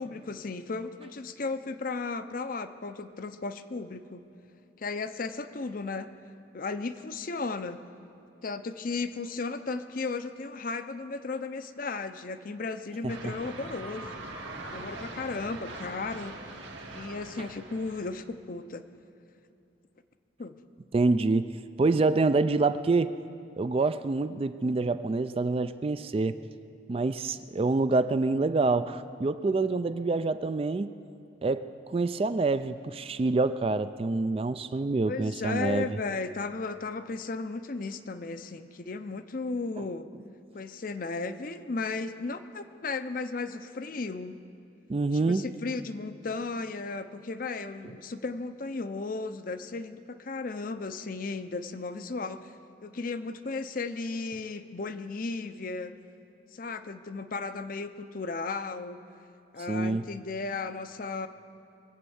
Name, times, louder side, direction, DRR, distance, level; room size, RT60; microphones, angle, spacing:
voice 1, 0.0-4.2 4.8-6.1 6.5-7.8 8.4-14.2 14.7-16.4 16.9-18.8 20.4-20.6 35.1-40.1 40.5-44.4 45.1-52.6 52.8-55.9 56.5-59.0 59.5-61.3, left 3 dB, 45° left, 10 dB, 0.6 m, -35 dB
sound 1, 13.1-18.2, right 2 dB, 80° right, 2.0 m, -42 dB
voice 2, 20.9-21.5 21.8-23.1 23.6-26.4 26.9-30.9 31.4-35.9 44.9-45.4 59.7-60.0, right 3 dB, 30° right, 12 dB, 0.3 m, -26 dB
23.5 x 8.3 x 7.0 m, 2.7 s
head